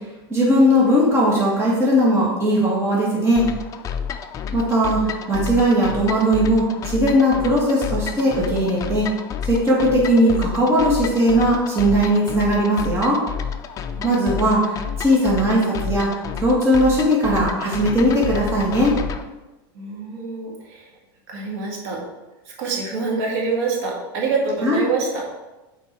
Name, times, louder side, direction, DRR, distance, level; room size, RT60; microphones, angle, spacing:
voice 1, 0.3-3.5 4.5-9.1 9.4-13.2 14.0-18.9 24.6-24.9, equal, 20° right, -5 dB, 1.9 m, -18 dB
sound 1, 3.4-19.2, left 7 dB, 25° left, 0.5 m, -30 dB
voice 2, 14.0-14.5 19.7-20.8 21.3-22.0 22.6-25.2, right 4 dB, 70° right, -1 dB, 2.2 m, -26 dB
8.2 x 4.5 x 4.6 m, 1.1 s
supercardioid pair, 140°, 13 cm